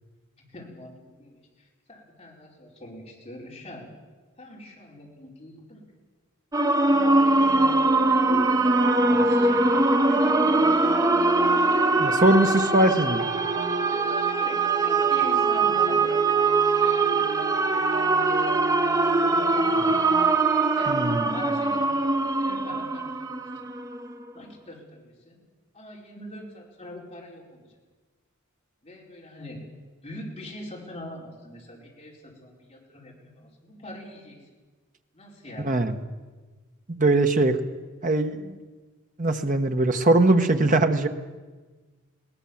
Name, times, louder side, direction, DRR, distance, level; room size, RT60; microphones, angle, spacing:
voice 1, 0.4-3.9 4.4-5.8 6.7-9.9 10.1-10.5 14.4-16.2 16.5-17.6 17.8-18.7 19.5-20.0 20.7-21.9 22.2-23.6 24.3-25.4 25.7-27.7 28.8-29.6 30.0-34.5 35.1-35.7, left 1 dB, 30° left, -3 dB, 5.0 m, -43 dB
sound 1, 6.5-24.2, right 3 dB, 15° right, 0.8 m, -22 dB
sound 2, 6.9-20.3, right 3 dB, 70° right, 2.4 m, -35 dB
voice 2, 12.0-13.2 20.9-21.4 35.6-36.0 36.9-37.6 38.0-38.6 39.2-41.1, right 2 dB, 40° right, 7 dB, 1.2 m, -21 dB
21.5 x 18.0 x 7.3 m, 1.3 s
head